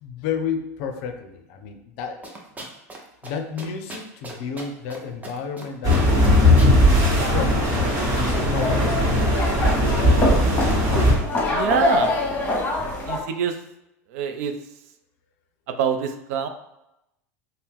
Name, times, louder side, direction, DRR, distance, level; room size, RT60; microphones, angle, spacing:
voice 1, 0.0-2.7 3.2-7.0 7.3-7.7 8.2-9.6, left 6 dB, 55° left, 6 dB, 0.5 m, -32 dB
sound 1, 2.2-3.0 3.2-3.3 3.6-5.0 5.2-5.6 5.9-6.7, right 2 dB, 20° right, 0.7 m, -37 dB
sound 2, 5.8-11.1, left 1 dB, 45° right, 1.2 m, -18 dB
sound 3, 7.0-13.2, left 2 dB, 20° left, 0.9 m, -26 dB
voice 2, 11.5-12.2 13.1-13.5 14.1-14.5 15.7-16.5, right 7 dB, 65° right, 6 dB, 0.4 m, -25 dB
2.7 x 2.0 x 3.5 m, 0.86 s
hypercardioid pair, 85°, 9 cm